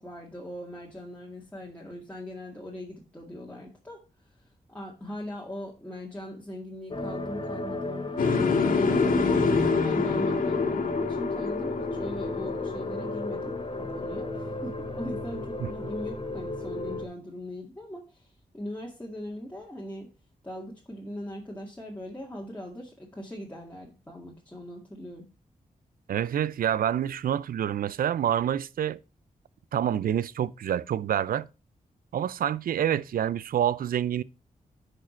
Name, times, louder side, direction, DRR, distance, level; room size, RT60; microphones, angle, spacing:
voice 1, 0.0-4.4 4.7-9.3 9.8-20.1 20.4-25.2, equal, 10° left, 2.0 m, -40 dB
sound 1, 6.9-17.1, left 2 dB, 35° left, 1.7 m, -34 dB
sound 2, 8.2-14.2, left 4 dB, 70° left, 2.1 m, -27 dB
voice 2, 26.1-29.0 29.7-31.5 32.1-34.2, right 10 dB, 75° right, 0.5 m, -27 dB
10.0 x 5.0 x 4.3 m
cardioid pair, 85°, 15 cm